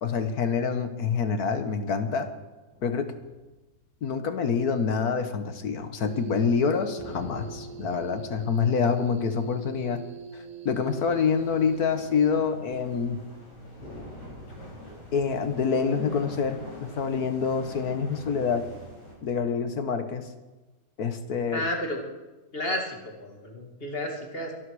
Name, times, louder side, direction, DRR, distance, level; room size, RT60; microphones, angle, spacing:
voice 1, 0.0-2.3 2.8-3.1 4.0-10.0 10.7-13.2 15.1-16.6 16.9-18.6 19.2-20.2 21.0-21.7, left 6 dB, 70° left, 8 dB, 1.7 m, -26 dB
sound 1, 2.7-4.6 7.0-10.7 11.1-11.2 13.8-17.5, equal, 5° right, 7.8 m, -48 dB
sound 2, 6.0-12.5, right 9 dB, 60° right, 2.0 m, -42 dB
sound 3, 10.9-19.1, equal, 50° left, 6.4 m, -45 dB
voice 2, 21.5-22.0 22.5-24.5, left 1 dB, 35° left, 2 dB, 2.6 m, -31 dB
23.5 x 12.5 x 4.9 m, 1.2 s
omnidirectional pair, 1.7 m